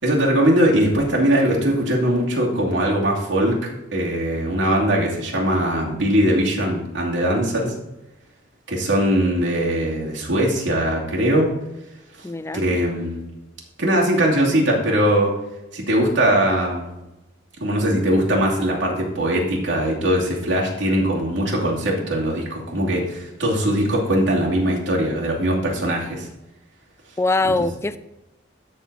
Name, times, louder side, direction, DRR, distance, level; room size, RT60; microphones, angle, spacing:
voice 1, 0.0-3.6 3.9-7.7 8.7-11.5 12.5-13.2 13.8-15.3 15.7-16.9 17.6-26.3 27.6-27.7, right 1 dB, 70° right, -3 dB, 2.7 m, -20 dB
voice 2, 12.2-12.7 27.2-28.0, left 2 dB, 15° left, 13 dB, 0.4 m, -22 dB
13.0 x 4.5 x 4.2 m, 0.95 s
head